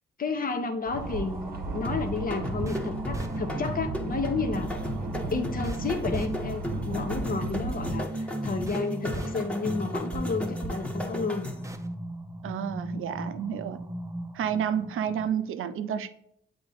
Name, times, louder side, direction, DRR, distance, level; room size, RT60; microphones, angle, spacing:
voice 1, 0.2-4.8 5.3-11.5 13.6-13.7, left 4 dB, 45° left, 5 dB, 0.9 m, -31 dB
sound 1, 0.9-15.3, right 2 dB, 15° right, 0.7 m, -37 dB
sound 2, 0.9-8.0, right 2 dB, 45° right, 0.9 m, -36 dB
sound 3, 1.8-11.8, left 1 dB, 5° left, 1.2 m, -36 dB
voice 2, 12.4-13.8 14.3-16.1, right 8 dB, 75° right, 10 dB, 0.6 m, -30 dB
7.8 x 3.0 x 4.0 m, 0.72 s
supercardioid pair, 55°, 21 cm